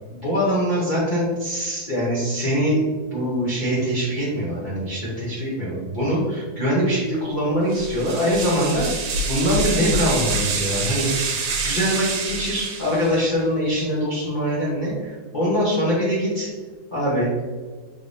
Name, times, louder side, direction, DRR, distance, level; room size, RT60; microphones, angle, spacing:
voice 1, 0.1-2.8 3.1-8.9 9.3-16.5 16.9-17.3, equal, 50° left, -8 dB, 0.5 m, -23 dB
sound 1, 7.7-13.3, right 3 dB, 80° right, 1.4 m, -27 dB
3.8 x 2.6 x 3.2 m, 1.4 s
omnidirectional pair, 2.2 m